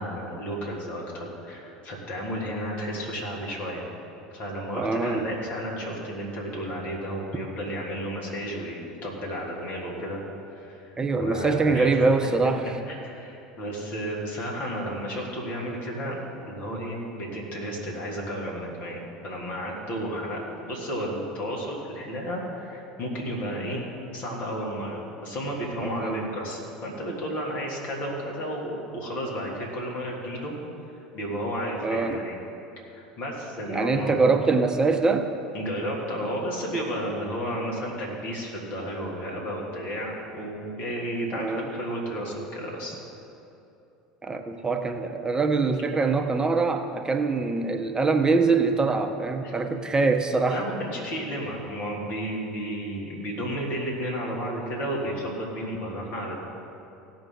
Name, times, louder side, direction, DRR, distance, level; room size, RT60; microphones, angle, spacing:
voice 1, 0.0-3.9 4.3-10.2 10.5-11.9 12.9-16.2 16.4-23.8 24.1-30.5 31.1-32.4 32.9-34.5 35.5-43.0 49.4-49.5 50.5-56.4, equal, 50° left, -3 dB, 2.9 m, -32 dB
voice 2, 4.8-5.2 11.0-12.7 25.8-26.2 31.8-32.2 33.7-35.3 41.3-41.7 44.2-50.6, right 4 dB, 20° right, 5 dB, 0.9 m, -24 dB
17.0 x 7.0 x 4.0 m, 2.7 s
hypercardioid pair, 75°, 4 cm